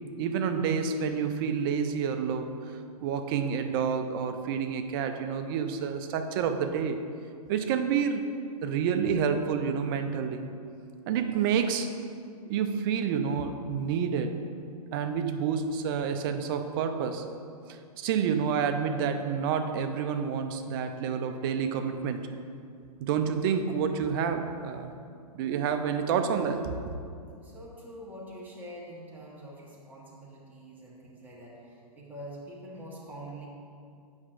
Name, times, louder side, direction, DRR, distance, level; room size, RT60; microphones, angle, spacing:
voice 1, 0.2-2.5 3.0-7.0 7.5-8.3 8.6-10.5 11.1-11.9 12.5-14.4 14.9-17.2 17.7-22.3 23.0-24.9 25.3-26.9, right 7 dB, 35° right, 7 dB, 0.4 m, -29 dB
voice 2, 27.4-33.5, right 1 dB, 10° right, -5 dB, 1.2 m, -45 dB
8.4 x 5.6 x 2.5 m, 2.4 s
hypercardioid pair, 135°, 20 cm